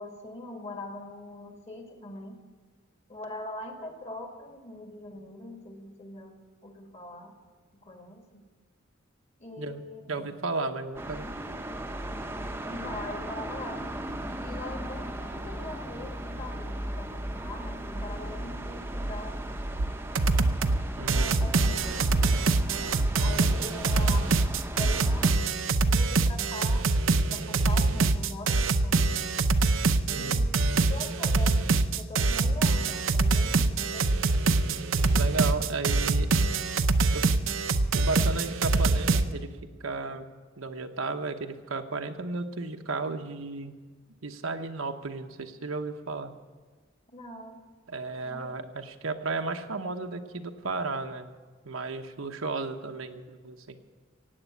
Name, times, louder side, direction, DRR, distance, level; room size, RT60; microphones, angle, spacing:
voice 1, 0.0-2.4 3.1-7.3 7.8-8.4 9.4-10.3 12.4-13.9 14.4-19.6 21.0-22.6 23.2-24.3 24.7-25.6 25.8-26.9 27.3-29.1 30.1-34.3 47.1-47.6 48.2-48.7, left 2 dB, 35° left, 3 dB, 1.9 m, -42 dB
voice 2, 10.1-11.6 21.0-21.3 30.1-30.4 35.1-36.3 37.1-37.2 37.9-39.5 39.8-40.3 40.6-43.7 44.2-46.3 47.9-51.3 51.6-53.8, right 3 dB, 85° right, 6 dB, 1.0 m, -34 dB
sound 1, 11.0-25.3, right 1 dB, 10° right, 0.8 m, -37 dB
sound 2, 19.8-19.9 20.2-20.8 21.1-39.2, right 3 dB, 70° right, 0.7 m, -24 dB
16.5 x 8.8 x 8.2 m, 1.4 s
head